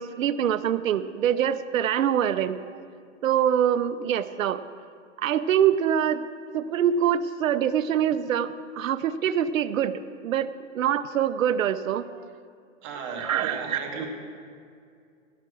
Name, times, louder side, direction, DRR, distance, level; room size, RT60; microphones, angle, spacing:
voice 1, 0.0-2.6 3.2-4.6 5.2-6.2 6.5-8.5 8.8-9.9 10.2-10.5 10.8-12.0 13.2-13.8, right 9 dB, 80° right, 14 dB, 0.7 m, -24 dB
voice 2, 12.8-14.1, right 5 dB, 10° right, 3 dB, 0.5 m, -34 dB
17.0 x 5.8 x 6.2 m, 2.3 s
hypercardioid pair, 160°, 39 cm